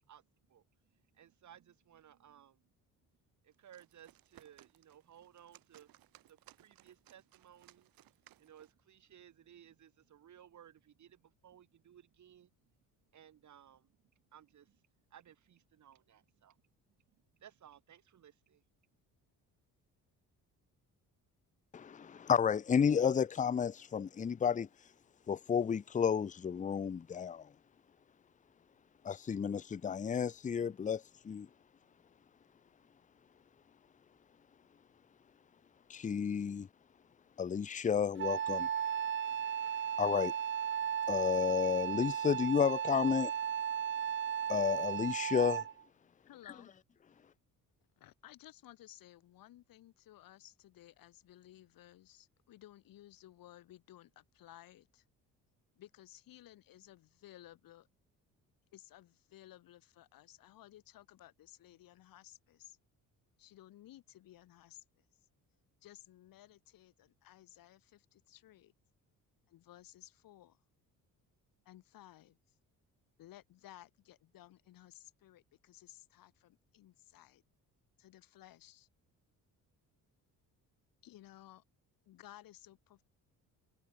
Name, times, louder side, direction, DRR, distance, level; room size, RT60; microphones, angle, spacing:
voice 1, 0.9-2.6 3.4-5.9 6.2-7.9 8.4-12.7 13.1-14.8 15.1-16.6 17.4-18.6, right 10 dB, 55° right, 6.7 m, -60 dB
sound 1, 3.5-8.8, right 14 dB, 80° right, 5.6 m, -63 dB
voice 2, 21.7-24.7 25.3-27.4 29.0-31.5 35.9-36.7 37.4-38.7 40.0-40.3 41.1-43.3 44.5-45.6, left 7 dB, 20° left, 0.6 m, -32 dB
Wind instrument woodwind instrument, 38.2-45.8, right 9 dB, 35° right, 0.7 m, -35 dB
voice 3, 46.2-46.7 48.0-55.0 55.8-57.9 58.7-62.8 63.4-65.3 65.8-68.7 69.5-70.6 71.6-72.6 73.2-77.4 78.0-78.9 81.0-81.6 82.1-83.0, left 14 dB, 80° left, 4.0 m, -57 dB
cardioid pair, 125°, 34 cm